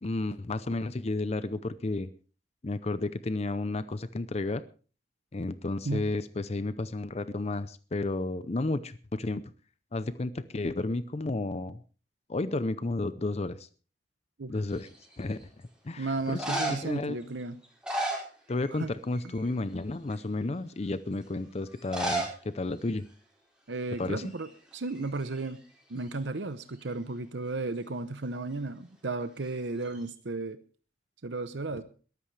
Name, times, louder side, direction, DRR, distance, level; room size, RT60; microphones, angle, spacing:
voice 1, 0.0-2.1 2.6-4.6 5.3-9.4 9.9-11.8 12.3-13.7 14.5-15.5 15.8-17.2 18.5-23.0 24.0-24.3, left 2 dB, 35° left, 14 dB, 0.6 m, -32 dB
sound 1, 14.7-15.2 16.2-17.0 17.6-18.9 19.1-19.5 20.1-20.2 21.8-22.4 22.6-22.7 22.9-23.0 23.8-24.0 24.3-25.5 29.4-30.1, right 1 dB, 5° right, 5.2 m, -34 dB
voice 2, 16.0-17.6 18.7-18.9 19.2-19.3 23.7-24.5 24.7-25.6 25.9-30.6 31.2-31.8, right 3 dB, 90° right, 11 dB, 0.8 m, -34 dB
21.5 x 13.0 x 3.3 m, 0.37 s
head